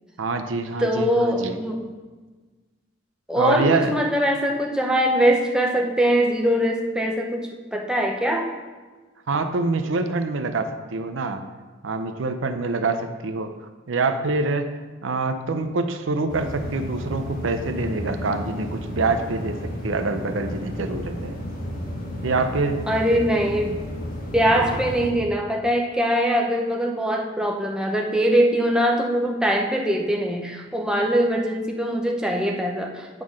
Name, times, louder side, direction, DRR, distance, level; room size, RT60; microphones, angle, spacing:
voice 1, 0.2-1.6 3.4-3.9 9.3-11.4 11.8-13.5 13.9-21.4 22.2-22.9 24.5-24.8, right 3 dB, 75° right, 8 dB, 0.6 m, -25 dB
voice 2, 0.8-1.9 3.3-8.5 22.9-23.8 24.3-33.2, equal, 5° right, 0 dB, 0.7 m, -22 dB
sound 1, 16.3-25.1, equal, 45° left, 1.3 m, -32 dB
9.1 x 3.8 x 6.2 m, 1.3 s
head